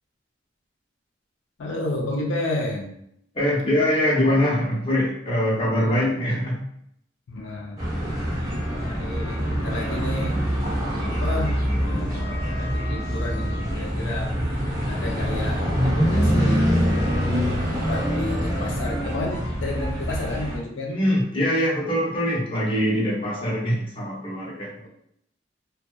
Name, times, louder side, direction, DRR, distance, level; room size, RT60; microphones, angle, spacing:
voice 1, 1.6-3.0 5.6-6.1 7.3-7.8 8.7-10.4 11.0-14.6 14.9-16.7 17.7-21.0 24.8-24.9, left 2 dB, 80° left, -1 dB, 0.5 m, -32 dB
voice 2, 3.3-6.7 20.9-24.7, left 1 dB, 30° left, -5 dB, 0.6 m, -23 dB
sound 1, 7.8-20.6, equal, 20° right, 0.6 m, -24 dB
2.6 x 2.1 x 2.2 m, 0.73 s
head